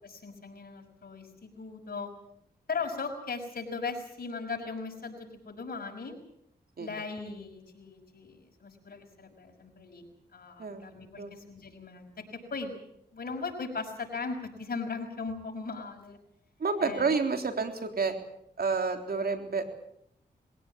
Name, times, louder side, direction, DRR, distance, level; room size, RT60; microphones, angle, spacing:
voice 1, 0.0-2.1 2.7-6.2 6.8-12.8 13.1-16.2 16.8-17.2, left 4 dB, 60° left, 2 dB, 6.1 m, -38 dB
voice 2, 16.6-18.1 18.6-19.6, right 4 dB, 60° right, 6 dB, 3.6 m, -29 dB
21.5 x 17.0 x 8.7 m, 0.76 s
cardioid pair, 55°, 17 cm